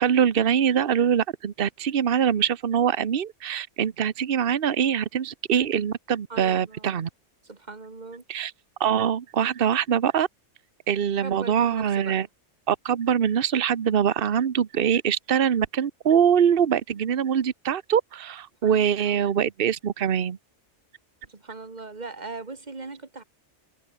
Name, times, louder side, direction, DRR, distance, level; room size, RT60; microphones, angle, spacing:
voice 1, 0.0-7.1 8.3-8.5 8.8-10.3 10.9-12.3 12.7-20.4, right 8 dB, 50° right, 1.1 m, -23 dB
voice 2, 6.3-7.0 7.4-8.2 11.2-12.2 18.6-19.2 21.3-23.2, right 3 dB, 35° right, 2.1 m, -39 dB
omnidirectional pair, 1.2 m